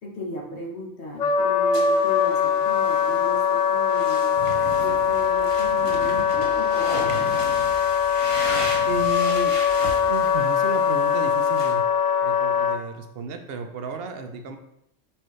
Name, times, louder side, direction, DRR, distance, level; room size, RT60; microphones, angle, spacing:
voice 1, 0.0-4.2 4.7-7.3, left 1 dB, 55° left, -1 dB, 1.3 m, -36 dB
Wind instrument woodwind instrument, 1.2-12.8, left 7 dB, 75° left, 0.9 m, -22 dB
sound 1, 1.7-11.7, left 1 dB, 30° left, 0.8 m, -37 dB
sound 2, 4.4-10.4, right 5 dB, 90° right, 1.0 m, -39 dB
voice 2, 8.9-9.6 10.0-11.8 12.2-14.6, right 3 dB, 60° right, 6 dB, 0.7 m, -33 dB
4.5 x 3.7 x 3.1 m, 0.77 s
omnidirectional pair, 1.3 m